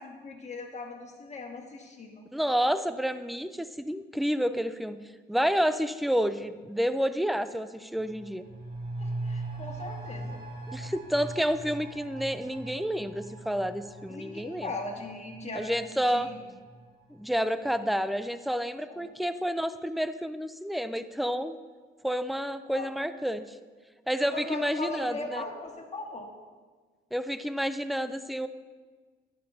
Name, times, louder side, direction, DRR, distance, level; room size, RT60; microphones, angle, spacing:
voice 1, 0.0-2.2 9.0-10.4 14.1-15.8 16.1-16.3 18.9-19.1 22.7-22.9 24.3-26.3, left 2 dB, 35° left, 1 dB, 1.8 m, -39 dB
voice 2, 2.3-5.0 5.3-8.5 10.7-14.7 15.5-16.3 17.1-21.6 22.0-23.6 24.1-25.4 27.1-28.5, equal, ahead, 12 dB, 0.4 m, -29 dB
sound 1, 7.9-17.3 17.7-17.8, right 2 dB, 50° right, 2.5 m, -40 dB
11.0 x 11.0 x 2.8 m, 1.4 s
cardioid pair, 90°, 20 cm